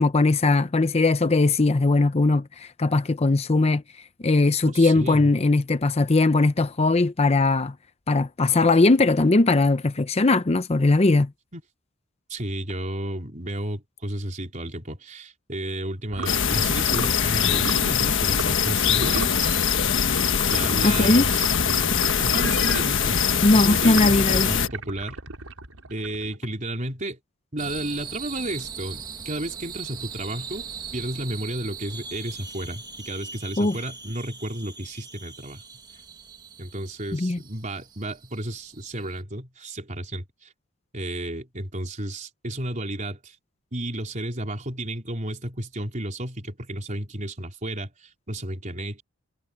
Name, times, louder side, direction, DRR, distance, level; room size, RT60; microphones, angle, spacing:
voice 1, 0.0-3.8 4.2-7.7 8.1-11.3 20.8-21.3 23.4-24.5 33.6-33.8 37.1-37.4, left 2 dB, 30° left, 0.6 m, -20 dB
voice 2, 4.7-5.3 11.5-11.6 12.3-19.6 20.5-23.2 23.5-25.2 25.9-27.2 27.5-30.6 30.9-35.6 36.6-40.5 40.9-43.4 43.7-49.0, right 1 dB, 35° right, 4.1 m, -32 dB
sound 1, 16.1-16.4 16.9-17.2 17.6-17.9 18.3-18.7 19.0-19.4 20.1-23.0 23.6-26.4, right 2 dB, 80° right, 5.4 m, -36 dB
sound 2, 16.3-24.7, left 7 dB, 60° left, 1.4 m, -22 dB
sound 3, 27.6-39.2, right 6 dB, 20° right, 1.4 m, -40 dB
head